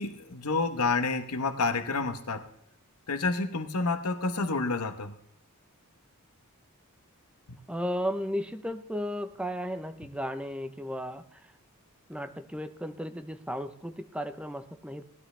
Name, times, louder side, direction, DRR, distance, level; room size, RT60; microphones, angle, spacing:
voice 1, 0.0-2.5 3.1-5.1, left 3 dB, 80° left, 8 dB, 1.2 m, -29 dB
voice 2, 7.7-11.5 12.1-15.0, equal, 5° right, 8 dB, 0.8 m, -35 dB
18.0 x 12.5 x 3.4 m, 0.71 s
head